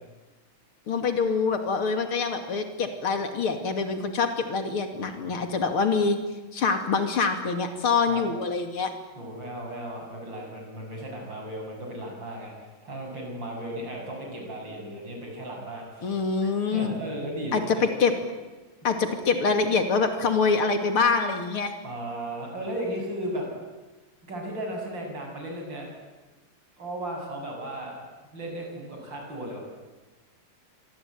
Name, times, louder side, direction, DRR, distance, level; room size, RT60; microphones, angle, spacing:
voice 1, 0.9-6.2 6.5-8.9 16.0-17.0 17.5-18.2 18.8-21.7, left 4 dB, 90° left, 6 dB, 3.4 m, -25 dB
voice 2, 9.1-12.5 12.8-16.2 16.7-17.9 21.8-23.5 24.3-25.9 26.8-28.0 28.3-29.6, right 1 dB, 60° right, 1 dB, 8.1 m, -35 dB
26.5 x 22.5 x 9.4 m, 1.2 s
omnidirectional pair, 2.3 m